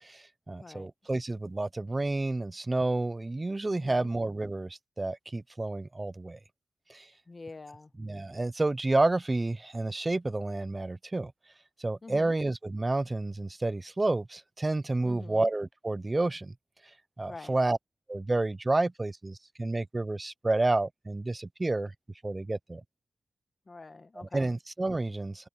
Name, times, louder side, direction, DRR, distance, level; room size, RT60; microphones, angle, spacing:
voice 1, 0.0-6.4 6.9-7.1 8.0-11.3 11.8-16.5 17.2-17.8 18.1-21.9 22.2-22.8 24.2-25.5, right 2 dB, 25° right, 0.6 m, -30 dB
voice 2, 3.7-4.1 7.3-7.9 12.0-12.4 15.0-15.5 17.3-17.6 23.7-24.5, left 3 dB, 35° left, 1.5 m, -46 dB
wide cardioid pair, 95°, 0 cm